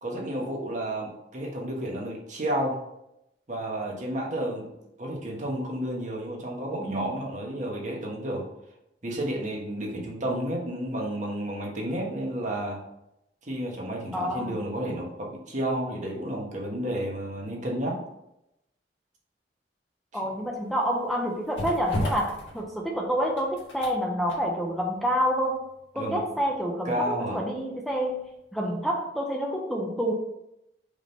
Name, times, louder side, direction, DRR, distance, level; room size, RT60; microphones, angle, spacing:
voice 1, 0.0-2.8 3.5-4.7 5.0-8.5 9.0-12.8 13.4-18.0 20.1-20.2 25.9-26.2 26.8-27.4, right 1 dB, 45° right, -1 dB, 1.4 m, -31 dB
voice 2, 14.1-14.5 20.1-25.7 25.9-28.2 28.5-30.1, equal, ahead, -1 dB, 0.6 m, -28 dB
sound 1, 20.3-28.3 28.6-28.8, left 1 dB, 80° left, 1.7 m, -37 dB
5.0 x 3.7 x 5.3 m, 0.84 s
head